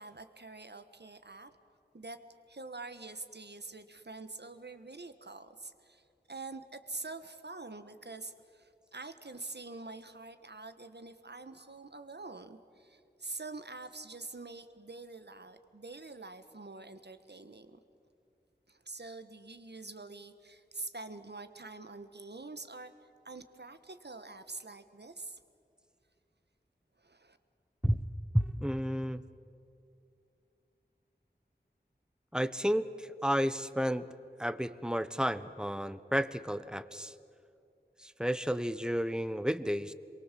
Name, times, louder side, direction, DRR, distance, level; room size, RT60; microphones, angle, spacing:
voice 1, 0.0-1.5 1.9-2.2 2.5-17.8 18.7-22.9 23.2-25.4 27.0-27.4, right 3 dB, 70° right, 10 dB, 1.5 m, -46 dB
voice 2, 28.3-29.2 32.3-34.1 34.4-37.1 38.0-39.9, equal, 5° right, 13 dB, 1.0 m, -31 dB
27.5 x 22.5 x 7.6 m, 2.7 s
wide cardioid pair, 40°, 18 cm